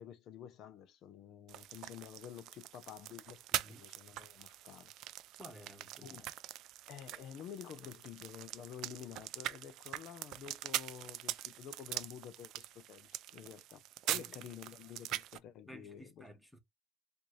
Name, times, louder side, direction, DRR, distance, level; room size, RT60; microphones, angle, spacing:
voice 1, 0.0-4.9 6.0-6.3 6.9-16.3, left 9 dB, 50° left, 0.7 m, -50 dB
sound 1, 1.5-15.4, right 14 dB, 55° right, 0.4 m, -43 dB
voice 2, 3.5-3.9 5.4-6.2 14.1-14.5 15.7-16.6, equal, ahead, 1.0 m, -54 dB
4.4 x 2.7 x 3.1 m
cardioid pair, 125°, 0 cm